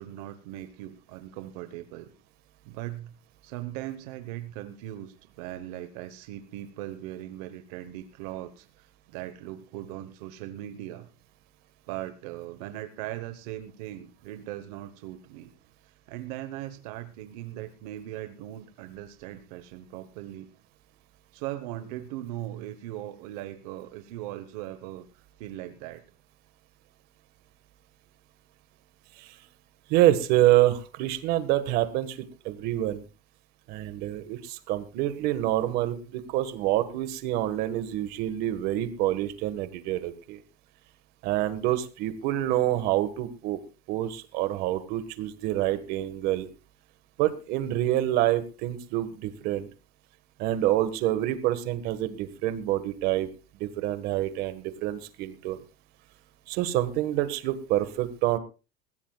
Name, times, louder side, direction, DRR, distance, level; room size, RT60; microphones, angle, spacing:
voice 1, 0.0-2.1 2.6-3.1 3.4-11.1 11.9-15.5 16.1-20.5 21.3-26.0, right 14 dB, 70° right, 10 dB, 1.1 m, -39 dB
voice 2, 29.9-32.2 32.4-33.0 33.7-40.4 41.2-43.6 43.9-46.5 47.2-49.7 50.4-53.3 53.6-55.6 56.5-58.4, right 14 dB, 50° right, 11 dB, 1.5 m, -27 dB
21.0 x 15.5 x 2.4 m, 0.31 s
cardioid pair, 165°, 20 cm